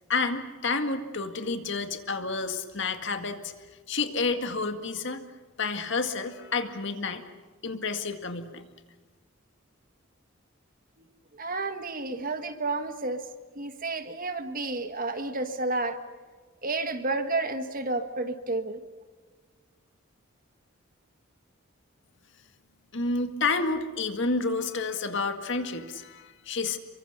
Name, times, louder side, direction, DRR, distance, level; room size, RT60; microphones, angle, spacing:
voice 1, 0.1-3.5 3.9-5.2 5.6-7.2 7.6-8.6 22.9-26.8, left 4 dB, 60° left, 7 dB, 2.0 m, -30 dB
voice 2, 11.4-13.2 13.5-16.0 16.6-18.8, right 3 dB, 40° right, 8 dB, 1.6 m, -31 dB
29.0 x 23.5 x 6.8 m, 1.4 s
head